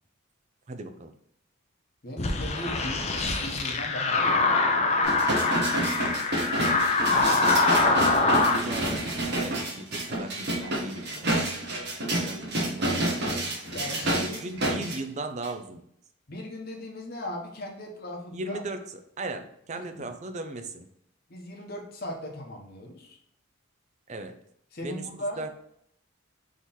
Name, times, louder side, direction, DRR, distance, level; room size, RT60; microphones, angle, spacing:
voice 1, 0.7-1.1 5.5-6.4 8.0-11.4 12.2-13.2 14.2-15.8 18.3-18.9 19.2-20.9 24.1-24.4 24.8-25.0 25.4-25.5, right 2 dB, 35° right, 8 dB, 0.4 m, -38 dB
voice 2, 2.0-3.1 3.4-4.5 13.7-14.4 16.3-18.6 19.7-20.1 21.3-23.2 24.7-25.5, left 1 dB, 45° left, 1 dB, 0.9 m, -38 dB
sound 1, 2.2-8.6, left 3 dB, 30° left, 0.5 m, -24 dB
sound 2, 5.0-15.0 15.4-15.5, right 1 dB, 50° right, 1.1 m, -29 dB
3.9 x 3.1 x 4.1 m, 0.72 s
head